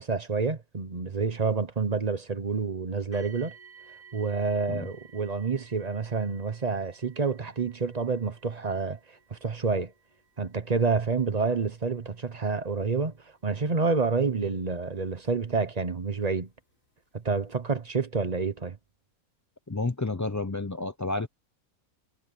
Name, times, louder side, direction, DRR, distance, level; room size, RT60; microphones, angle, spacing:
voice 1, 0.0-3.5 4.1-9.0 9.3-9.9 10.4-13.1 13.4-16.5 17.1-18.8, right 4 dB, 30° right, 1.0 m, -28 dB
sound 1, 3.1-16.0 16.8-16.9 17.5-17.6, right 6 dB, 60° left, 3.8 m, -56 dB
voice 2, 19.7-21.3, left 3 dB, 30° left, 0.3 m, -30 dB
omnidirectional pair, 1.6 m